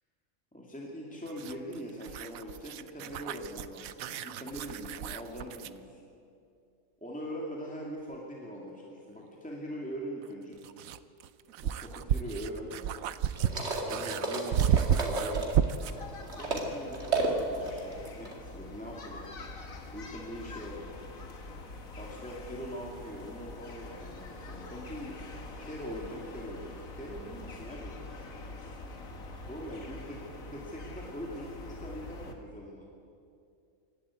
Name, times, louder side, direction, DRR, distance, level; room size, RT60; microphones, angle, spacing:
voice 1, 0.5-6.0 7.0-10.6 11.6-12.7 13.7-15.5 16.4-19.3 19.9-21.0 21.9-25.3 25.6-28.0 29.4-30.2 30.5-32.9, equal, 5° left, -3 dB, 2.4 m, -42 dB
sound 1, 1.3-5.8 8.1-8.2 10.2-16.0, right 9 dB, 90° right, 1.1 m, -32 dB
sound 2, 13.3-16.7 16.9-18.3, right 3 dB, 55° right, 2.7 m, -33 dB
sound 3, 15.8-32.3, left 2 dB, 85° left, 2.0 m, -45 dB
26.5 x 12.5 x 8.5 m, 2.5 s
omnidirectional pair, 1.4 m